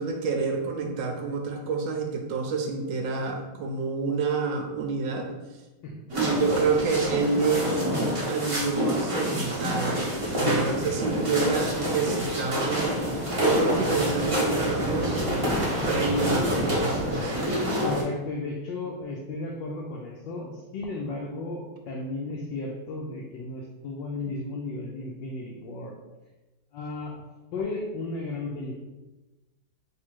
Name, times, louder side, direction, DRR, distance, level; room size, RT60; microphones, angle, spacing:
voice 1, 0.0-5.3 6.1-7.9 8.3-17.4 24.3-24.4, right 4 dB, 70° right, 2 dB, 1.2 m, -28 dB
sound 1, 6.1-18.0, equal, 45° right, 0.4 m, -27 dB
voice 2, 17.7-25.9 26.7-27.1 27.5-28.7, left 2 dB, 75° left, -1 dB, 1.1 m, -34 dB
3.6 x 2.6 x 4.4 m, 1.1 s
omnidirectional pair, 2.3 m